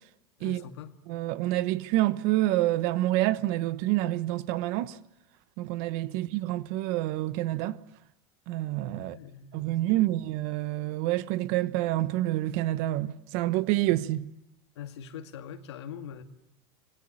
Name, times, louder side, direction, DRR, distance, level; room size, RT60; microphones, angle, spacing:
voice 1, 0.4-0.9 6.1-6.2 9.0-9.9 14.8-16.2, left 8 dB, 90° left, 2.4 m, -43 dB
voice 2, 1.1-4.9 5.6-7.8 8.5-9.2 9.5-14.3, right 16 dB, 50° right, 1.1 m, -27 dB
25.5 x 21.5 x 9.8 m
supercardioid pair, 155°, 14 cm